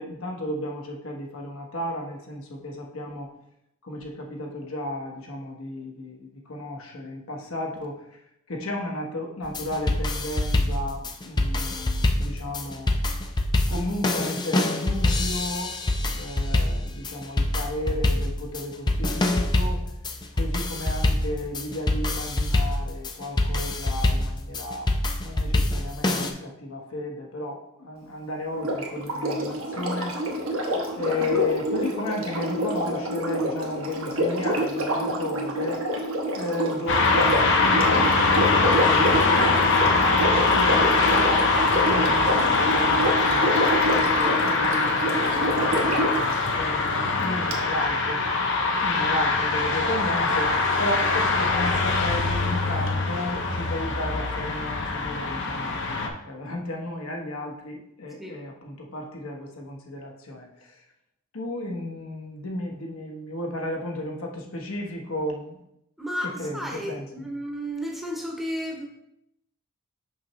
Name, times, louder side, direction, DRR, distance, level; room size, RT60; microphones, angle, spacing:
voice 1, 0.0-3.3 3.8-8.0 8.5-12.9 13.7-15.8 16.1-19.8 20.3-24.9 25.2-30.1 30.9-35.8 36.3-48.2 48.8-60.7 61.3-65.6 66.4-67.1, left 1 dB, 75° left, 0 dB, 1.1 m, -33 dB
sound 1, 9.4-26.3, left 1 dB, 20° left, 0.4 m, -25 dB
Sink (filling or washing), 28.5-46.3 47.5-47.6, equal, 75° right, 1.1 m, -27 dB
sound 2, 36.9-56.1, left 3 dB, 55° left, 0.7 m, -23 dB
voice 2, 66.0-68.9, equal, ahead, -1 dB, 0.8 m, -32 dB
6.0 x 5.7 x 3.1 m, 0.79 s
head